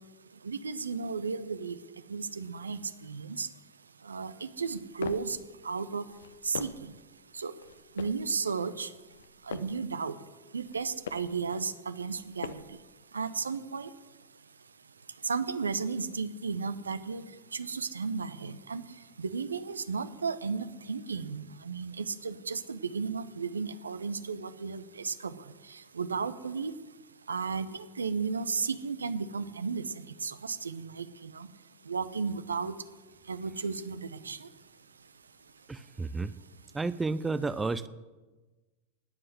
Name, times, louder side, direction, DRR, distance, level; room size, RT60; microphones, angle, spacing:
voice 1, 0.4-1.8 2.1-3.5 4.0-5.4 5.6-6.1 6.4-6.9 7.3-7.5 7.9-8.9 9.4-10.2 10.5-12.8 13.1-13.9 15.2-17.2 17.5-26.7 27.3-31.5 31.8-32.8 33.3-34.5, right 5 dB, 75° right, 13 dB, 0.8 m, -34 dB
sound 1, 4.6-5.4 6.1-7.0 7.6-8.3 9.0-9.9 10.6-11.4 12.0-12.8, left 7 dB, 65° left, 0.8 m, -43 dB
voice 2, 35.7-36.3 36.7-37.9, right 3 dB, 10° right, 15 dB, 0.6 m, -31 dB
19.5 x 7.8 x 7.8 m, 1.2 s
figure-of-eight pair, 90°, 0 cm